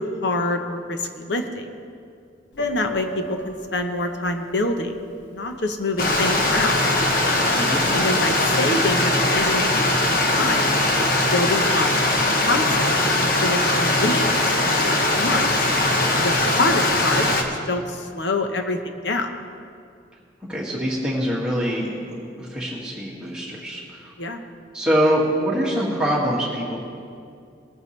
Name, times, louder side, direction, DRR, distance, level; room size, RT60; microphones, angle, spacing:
voice 1, 0.0-1.7 2.6-4.9 5.3-6.9 7.9-10.8 11.3-14.5 14.9-15.5 16.2-19.3 24.2-24.4, left 2 dB, 70° left, 6 dB, 1.0 m, -26 dB
Piano, 2.5-8.5, left 1 dB, 85° left, 1.9 m, -37 dB
Stream, 6.0-17.4, left 2 dB, 50° left, 1.1 m, -20 dB
voice 2, 7.5-7.8 20.5-24.1 24.7-26.8, equal, 5° right, -7 dB, 2.1 m, -24 dB
19.5 x 9.2 x 3.3 m, 2.4 s
head